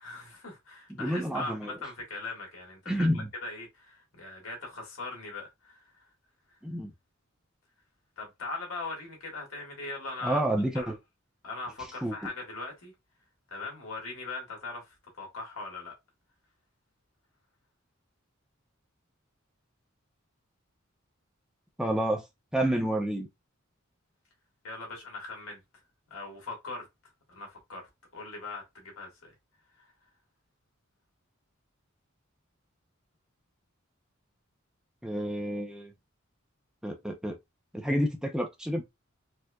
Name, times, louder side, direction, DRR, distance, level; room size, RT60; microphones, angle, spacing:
voice 1, 0.0-5.9 8.2-10.4 10.7-11.0 11.4-12.9 13.5-15.9 24.6-25.6 26.1-26.9 27.3-27.8 28.1-29.3 29.8-29.9, left 3 dB, 90° left, 1.7 m, -40 dB
voice 2, 1.0-1.7 2.9-3.3 6.6-6.9 10.2-11.0 12.0-12.1 21.8-22.2 22.5-23.3 35.0-35.9 36.8-37.4 37.7-38.8, right 1 dB, 5° right, 0.5 m, -29 dB
4.4 x 2.5 x 2.3 m
head